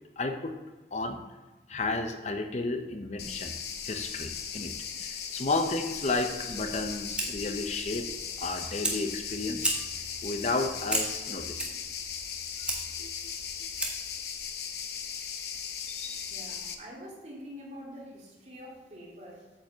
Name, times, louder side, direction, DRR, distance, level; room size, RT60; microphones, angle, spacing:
voice 1, 0.2-0.6 0.9-1.2 1.7-3.5 3.8-4.7 5.0-8.1 8.4-9.8 10.2-11.7 13.0-13.1 15.9-16.3, left 3 dB, 40° left, 6 dB, 0.6 m, -32 dB
sound 1, 3.2-16.7, left 7 dB, 65° left, 0.9 m, -38 dB
Fire, 6.7-14.2, right 1 dB, 5° right, 1.4 m, -36 dB
voice 2, 16.3-19.5, equal, 40° right, -4 dB, 2.9 m, -46 dB
8.9 x 5.2 x 7.2 m, 1.2 s
head